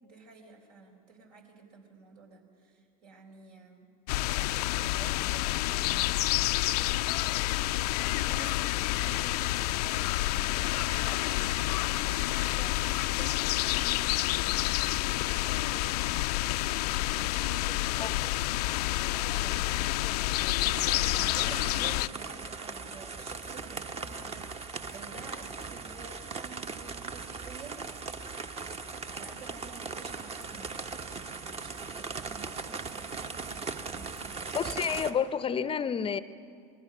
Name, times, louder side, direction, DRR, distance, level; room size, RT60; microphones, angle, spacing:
voice 1, 0.0-3.9 4.2-7.2 8.1-8.6 8.9-16.2 16.9-18.2 19.1-20.0 21.1-27.8 29.1-30.8 31.1-34.5 35.8-35.9, right 4 dB, 70° right, 2 dB, 4.5 m, -50 dB
sound 1, 4.1-22.1, left 17 dB, 65° left, 0.5 m, -29 dB
sound 2, 20.6-35.1, right 4 dB, 30° right, 1.3 m, -39 dB
voice 2, 34.5-36.2, left 7 dB, 25° left, 14 dB, 0.7 m, -29 dB
27.5 x 20.5 x 6.2 m, 2.3 s
hypercardioid pair, 80°, 21 cm